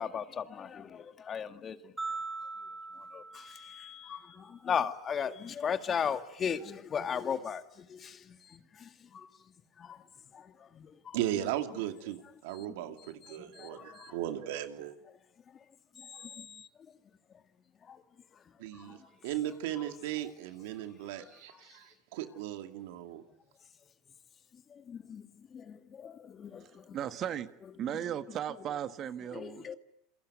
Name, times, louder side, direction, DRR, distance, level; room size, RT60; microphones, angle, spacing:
voice 1, 0.0-1.9 3.1-9.3 9.8-10.0 10.3-11.2 12.5-14.2 16.0-16.7 17.8-18.0 18.7-19.1 19.8-19.9 21.2-21.4 24.7-27.0 27.8-27.9 29.3-29.8, left 7 dB, 30° left, 1.9 m, -38 dB
sound 1, 2.0-4.3, right 3 dB, 15° right, 7.1 m, -41 dB
voice 2, 11.1-15.0 18.6-19.0 19.2-23.2, right 12 dB, 75° right, 2.4 m, -37 dB
voice 3, 26.6-27.5 27.8-29.7, right 10 dB, 45° right, 1.5 m, -37 dB
28.0 x 22.5 x 9.3 m
hypercardioid pair, 100°, 0 cm